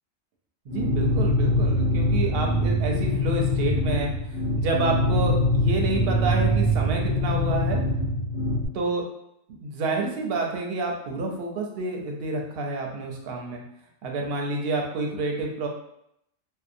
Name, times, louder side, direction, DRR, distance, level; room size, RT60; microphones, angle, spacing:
sound 1, 0.7-8.7, left 1 dB, 75° left, 1.1 m, -23 dB
voice 1, 0.7-7.8 8.7-9.0 9.6-13.6 14.0-15.7, right 3 dB, 60° right, 1 dB, 0.6 m, -29 dB
2.7 x 2.0 x 2.5 m, 0.77 s
omnidirectional pair, 1.3 m